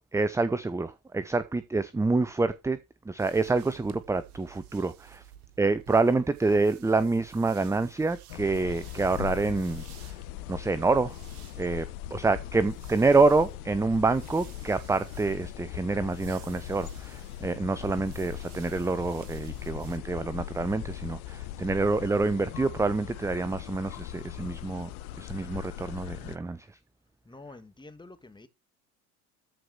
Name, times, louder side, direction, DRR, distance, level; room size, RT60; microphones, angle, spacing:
voice 1, 0.0-2.8 3.1-5.2 5.6-10.1 10.5-11.2 11.6-24.9 25.2-26.7, right 3 dB, 5° right, 0.6 m, -27 dB
sound 1, 3.2-20.0, right 11 dB, 70° right, 1.9 m, -52 dB
sound 2, 8.3-26.4, left 14 dB, 65° left, 1.3 m, -40 dB
voice 2, 27.2-28.5, left 2 dB, 10° left, 1.8 m, -48 dB
13.5 x 4.8 x 6.1 m
hypercardioid pair, 80°, 46 cm